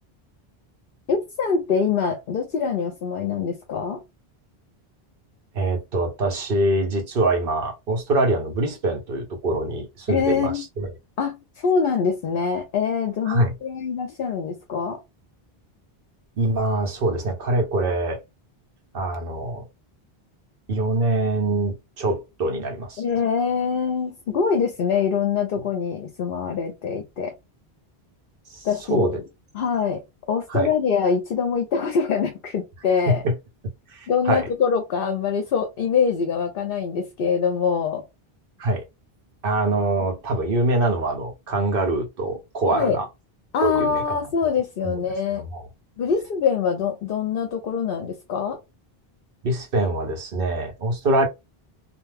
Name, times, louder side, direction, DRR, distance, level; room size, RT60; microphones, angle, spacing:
voice 1, 1.1-4.0 10.1-10.6 11.2-15.0 23.0-27.3 28.6-29.2 29.5-30.0 30.3-33.2 34.1-38.0 42.7-43.0 43.5-45.4 46.0-48.6, left 6 dB, 65° left, 0.8 m, -24 dB
voice 2, 5.5-10.9 13.3-13.5 16.4-18.2 18.9-19.6 20.7-23.0 28.5-29.2 30.5-30.7 33.1-33.3 33.9-34.5 38.6-38.8 39.4-43.1 43.6-44.2 44.8-45.1 45.3-45.6 49.4-51.3, right 2 dB, 65° right, 1.1 m, -24 dB
2.5 x 2.2 x 3.3 m
omnidirectional pair, 1.0 m